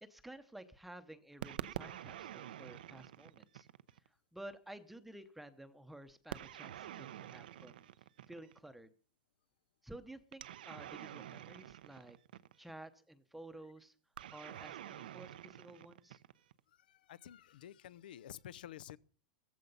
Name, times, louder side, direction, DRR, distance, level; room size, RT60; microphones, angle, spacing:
voice 1, 0.0-3.7 4.1-7.8 8.3-8.9 9.8-12.2 12.6-13.9 14.3-16.2, right 1 dB, ahead, 0.8 m, -53 dB
sound 1, 1.4-4.1 6.3-8.7 10.3-12.8 14.2-16.6, right 11 dB, 85° right, 0.8 m, -47 dB
voice 2, 16.7-19.0, left 11 dB, 80° left, 0.7 m, -51 dB
16.0 x 14.5 x 5.5 m
supercardioid pair, 170°, 5 cm